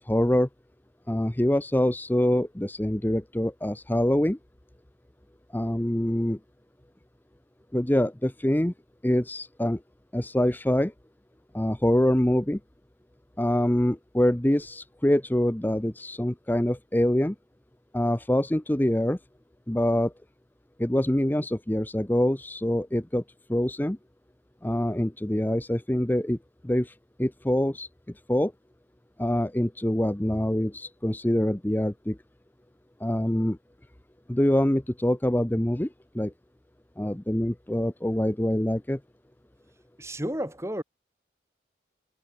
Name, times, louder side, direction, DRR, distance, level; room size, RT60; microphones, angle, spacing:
voice 1, 0.1-0.5 1.1-4.4 5.5-6.4 7.7-8.7 9.0-9.8 10.1-10.9 11.5-12.6 13.4-17.3 17.9-19.2 19.7-20.1 20.8-23.2 23.5-24.0 24.6-26.4 26.6-27.9 28.3-28.5 29.2-32.2 33.0-33.6 34.3-35.9 36.1-36.3 37.0-39.0, left 1 dB, 10° left, 0.7 m, -25 dB
voice 2, 40.0-40.8, equal, 15° right, 5.5 m, -31 dB
head